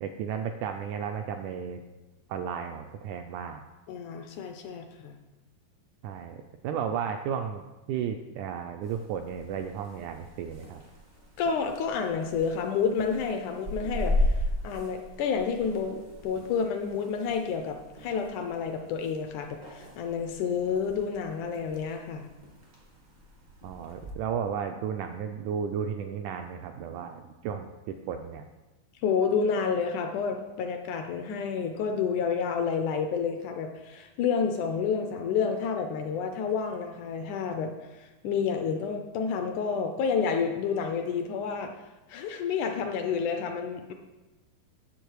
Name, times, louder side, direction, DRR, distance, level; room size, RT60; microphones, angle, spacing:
voice 1, 0.0-1.8 2.3-3.6 6.0-10.8 23.6-28.5, right 7 dB, 85° right, 6 dB, 1.8 m, -34 dB
voice 2, 3.9-5.2 11.4-22.3 29.0-41.7 42.1-43.9, left 6 dB, 75° left, 5 dB, 1.9 m, -29 dB
sound 1, 8.8-24.1, left 1 dB, 40° right, 0.6 m, -36 dB
10.0 x 7.2 x 4.6 m, 1.1 s
omnidirectional pair, 4.0 m